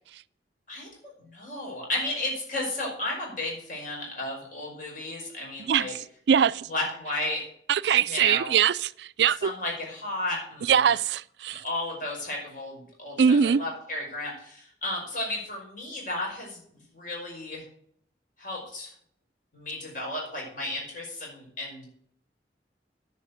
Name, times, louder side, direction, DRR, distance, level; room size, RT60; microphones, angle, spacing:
voice 1, 0.7-5.9 6.7-7.5 8.1-8.6 9.4-10.7 11.5-16.6 16.9-17.6 18.4-18.9 19.5-21.8, left 2 dB, 50° left, 5.3 m, -33 dB
voice 2, 6.3-6.7 7.7-9.5 10.7-11.6 13.2-13.6, right 7 dB, 70° right, 0.4 m, -22 dB
10.5 x 5.7 x 7.9 m
head